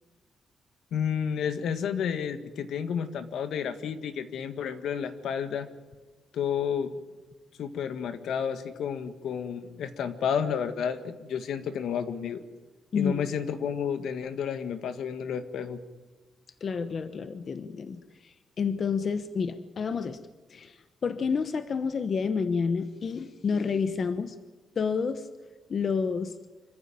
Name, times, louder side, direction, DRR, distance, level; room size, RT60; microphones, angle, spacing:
voice 1, 0.9-5.7 6.3-6.9 7.6-12.4 13.0-15.8, left 7 dB, 70° left, 10 dB, 1.7 m, -31 dB
voice 2, 16.6-20.2 20.5-24.4 24.8-25.3 25.7-26.4, left 5 dB, 35° left, 10 dB, 1.0 m, -29 dB
26.0 x 15.0 x 8.9 m, 1.3 s
wide cardioid pair, 180°, 0 cm